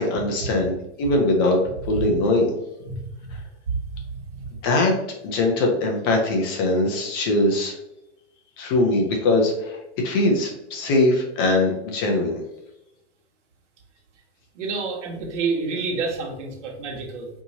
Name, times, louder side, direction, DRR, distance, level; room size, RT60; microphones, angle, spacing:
voice 1, 0.0-1.6 1.9-2.5 4.6-5.0 5.2-7.7 8.6-12.4, left 2 dB, 20° left, 2 dB, 0.4 m, -21 dB
voice 2, 2.8-3.4 3.9-4.0 4.4-4.5 14.5-17.3, right 4 dB, 75° right, 0 dB, 1.4 m, -29 dB
4.6 x 2.7 x 2.7 m, 0.87 s
supercardioid pair, 165°, 36 cm